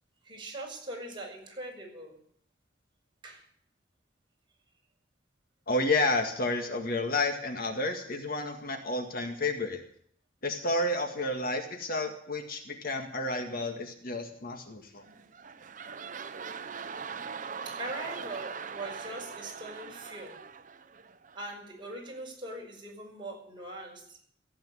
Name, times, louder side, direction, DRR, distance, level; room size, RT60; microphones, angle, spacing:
voice 1, 0.2-2.2 3.2-3.5 17.7-20.4 21.3-24.2, right 1 dB, 25° right, -1 dB, 5.8 m, -41 dB
voice 2, 5.7-9.8 10.4-15.0, left 2 dB, 55° left, 5 dB, 1.9 m, -31 dB
sound 1, 15.0-21.6 22.1-22.2, right 6 dB, 45° right, 0.8 m, -41 dB
15.5 x 8.8 x 9.6 m, 0.63 s
head